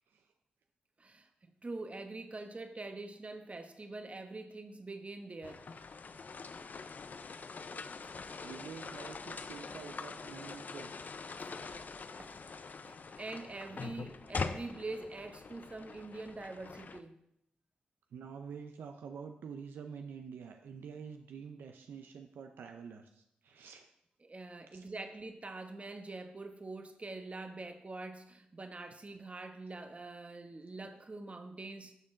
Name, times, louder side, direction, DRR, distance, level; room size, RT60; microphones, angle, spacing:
voice 1, 1.0-1.3 1.6-5.7 11.4-11.5 12.2-12.5 12.8-17.2 24.2-31.9, right 2 dB, 40° right, 7 dB, 1.0 m, -44 dB
sound 1, 5.4-17.0, left 4 dB, 55° left, 0.5 m, -44 dB
voice 2, 8.4-10.9 18.1-23.9 24.7-24.9, right 6 dB, 80° right, 5 dB, 0.5 m, -47 dB
12.0 x 4.4 x 3.7 m, 0.77 s
supercardioid pair, 40°, 3 cm